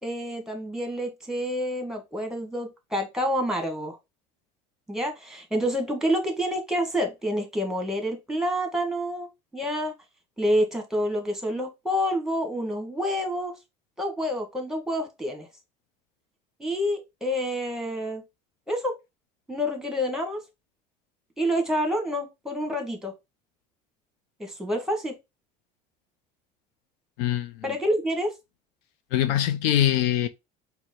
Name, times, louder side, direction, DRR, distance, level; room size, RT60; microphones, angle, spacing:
voice 1, 0.0-4.0 4.9-9.9 10.4-13.5 14.0-15.5 16.6-18.2 18.7-18.9 19.5-20.4 21.4-23.1 24.4-25.2 27.6-28.3, equal, ahead, 1.4 m, -28 dB
voice 2, 27.2-27.6 29.1-30.3, left 11 dB, 70° left, 0.4 m, -23 dB
4.4 x 2.1 x 4.3 m
hypercardioid pair, 80°, 21 cm